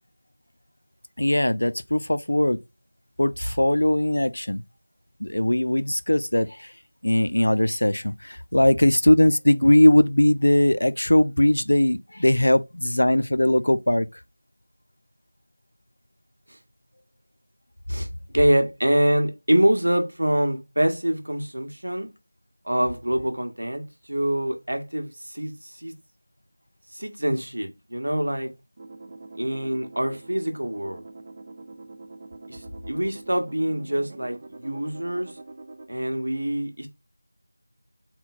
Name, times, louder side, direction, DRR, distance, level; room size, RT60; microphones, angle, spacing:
voice 1, 1.2-2.6 3.2-4.6 5.2-6.7 7.0-14.1, left 1 dB, 70° left, 0.3 m, -20 dB
voice 2, 17.9-22.1 22.6-25.9 26.9-28.5 29.4-31.0 32.5-35.3 35.9-36.9, right 1 dB, 75° right, 1.0 m, -25 dB
sound 1, 28.8-35.9, right 2 dB, 30° right, 0.4 m, -44 dB
3.8 x 2.1 x 4.1 m
figure-of-eight pair, 170°, 0 cm